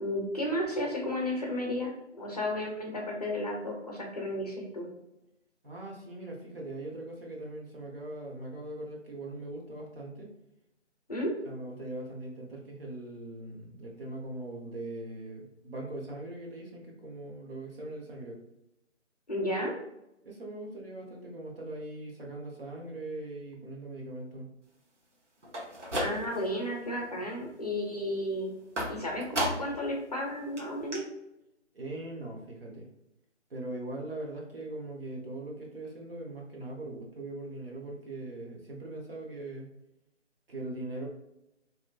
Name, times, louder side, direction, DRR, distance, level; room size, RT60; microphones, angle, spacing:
voice 1, 0.0-4.9 11.1-11.3 19.3-19.7 26.0-28.5 28.9-31.0, left 1 dB, 35° left, -1 dB, 0.6 m, -33 dB
voice 2, 5.6-10.3 11.4-18.4 20.2-24.5 31.7-32.9 33.5-39.7 40.5-41.1, right 2 dB, 50° right, -1 dB, 1.0 m, -40 dB
sound 1, 25.4-26.6 27.0-27.5 28.8-29.9 30.2-30.3 30.6-30.7 30.9-31.0, equal, 75° right, 1.2 m, -34 dB
3.0 x 2.7 x 2.4 m, 0.85 s
figure-of-eight pair, 150°, 36 cm